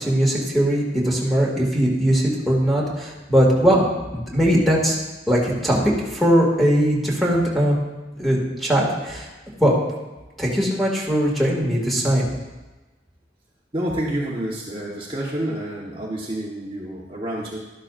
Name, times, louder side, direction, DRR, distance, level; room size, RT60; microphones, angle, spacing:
voice 1, 0.0-5.0 5.3-5.8 6.1-7.7 8.2-9.3 9.6-9.7 10.4-12.3, equal, ahead, -4 dB, 2.2 m, -20 dB
voice 2, 13.7-17.6, right 1 dB, 30° right, -4 dB, 1.2 m, -28 dB
12.5 x 11.5 x 2.5 m, 1.2 s
head